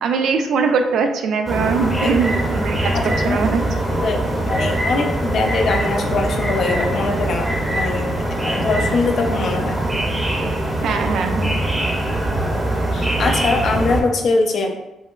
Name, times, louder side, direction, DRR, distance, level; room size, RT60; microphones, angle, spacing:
voice 1, 0.0-3.6 10.8-11.5, right 5 dB, 70° right, 6 dB, 0.3 m, -21 dB
sound 1, 1.5-14.0, right 1 dB, 15° right, 0.6 m, -22 dB
voice 2, 2.9-3.4 3.9-8.1 8.4-9.8 12.9-14.7, left 3 dB, 55° left, 2 dB, 0.4 m, -22 dB
3.2 x 2.8 x 2.3 m, 0.92 s
cardioid pair, 130°, 0 cm